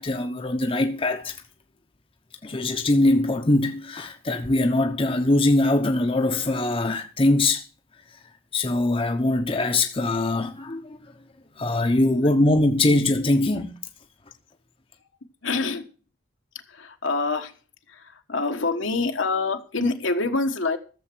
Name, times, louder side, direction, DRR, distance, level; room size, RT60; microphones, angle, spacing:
voice 1, 0.0-1.4 2.4-7.6 8.5-11.0 11.6-13.8, left 2 dB, 30° left, 0.9 m, -22 dB
voice 2, 15.4-15.8 16.7-17.5 17.9-20.8, left 3 dB, 70° left, 1.4 m, -26 dB
14.0 x 7.3 x 6.1 m
head